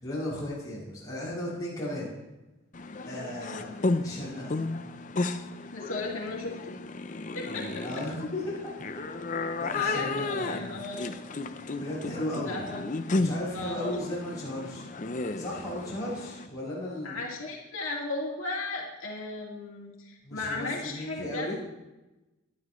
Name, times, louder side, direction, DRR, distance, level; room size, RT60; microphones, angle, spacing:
voice 1, 0.0-2.1 3.1-3.7 4.0-4.6 7.4-9.1 9.6-10.8 11.8-12.7 13.1-14.9 15.4-17.2 20.2-21.6, left 1 dB, 15° left, -9 dB, 5.4 m, -36 dB
sound 1, 2.7-16.5, left 3 dB, 35° left, 0.6 m, -33 dB
voice 2, 5.7-6.8 7.3-7.6 9.8-11.0 12.4-12.8 13.5-14.0 17.0-21.5, left 2 dB, 75° left, -3 dB, 2.3 m, -35 dB
18.5 x 11.5 x 3.1 m, 1.0 s
head